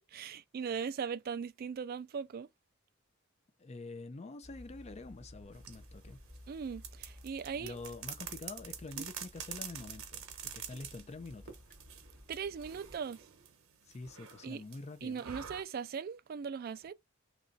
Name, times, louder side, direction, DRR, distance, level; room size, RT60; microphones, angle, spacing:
voice 1, 0.1-2.5 6.5-7.8 9.0-9.1 12.3-13.3 14.4-14.6 15.0-16.9, right 6 dB, 45° right, 0.3 m, -39 dB
voice 2, 3.6-6.2 7.5-11.6 13.9-15.2, left 3 dB, 30° left, 0.5 m, -46 dB
sound 1, 4.4-13.0, left 1 dB, 5° left, 1.9 m, -55 dB
sound 2, 5.5-15.6, right 8 dB, 80° right, 0.9 m, -48 dB
3.0 x 2.5 x 3.9 m
head